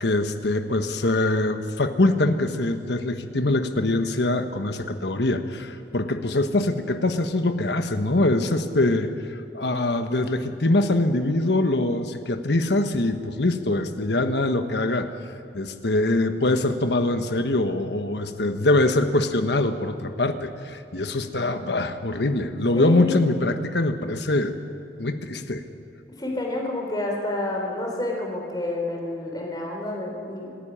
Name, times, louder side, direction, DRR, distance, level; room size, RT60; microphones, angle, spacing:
voice 1, 0.0-9.1 9.5-15.1 15.5-24.5 25.0-25.6, left 2 dB, 75° left, 8 dB, 1.3 m, -23 dB
voice 2, 22.8-23.2 26.2-30.5, left 2 dB, 25° left, 0 dB, 4.1 m, -29 dB
26.0 x 10.5 x 10.0 m, 2.7 s
head